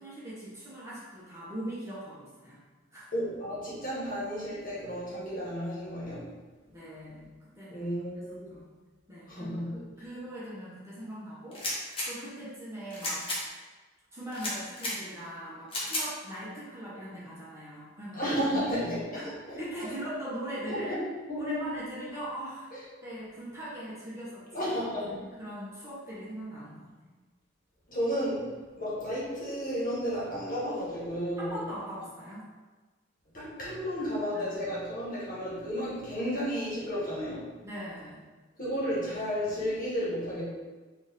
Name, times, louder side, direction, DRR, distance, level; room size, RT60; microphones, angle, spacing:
voice 1, 0.0-2.6 2.9-3.1 6.7-7.9 8.5-8.7 9.1-13.5 14.1-18.2 18.5-18.6 19.1-19.3 19.6-21.0 21.4-22.7 23.0-24.7 25.0-27.1 31.4-32.5 34.3-34.8 37.6-38.2, right 1 dB, 15° right, -9 dB, 1.0 m, -41 dB
voice 2, 3.1-6.3 7.7-8.6 9.3-9.8 18.1-19.9 20.6-21.0 21.3-21.8 24.5-25.2 27.9-31.6 33.3-37.5 38.6-40.4, equal, 45° left, -7 dB, 1.4 m, -33 dB
sound 1, 11.5-12.1 12.9-13.4 14.3-14.9 15.7-16.1, left 1 dB, 30° left, 1.0 m, -33 dB
4.3 x 2.7 x 3.6 m, 1.3 s
head